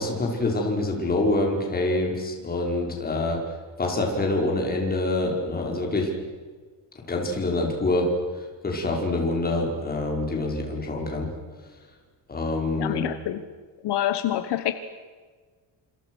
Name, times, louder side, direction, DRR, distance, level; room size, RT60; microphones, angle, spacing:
voice 1, 0.0-3.4 3.8-6.1 7.1-8.1 8.6-11.3 12.3-13.1, left 2 dB, 20° left, 1 dB, 5.3 m, -26 dB
voice 2, 12.8-13.4 13.8-14.7, left 12 dB, 70° left, 10 dB, 1.5 m, -26 dB
28.5 x 27.5 x 6.4 m, 1.5 s
cardioid pair, 180°, 42 cm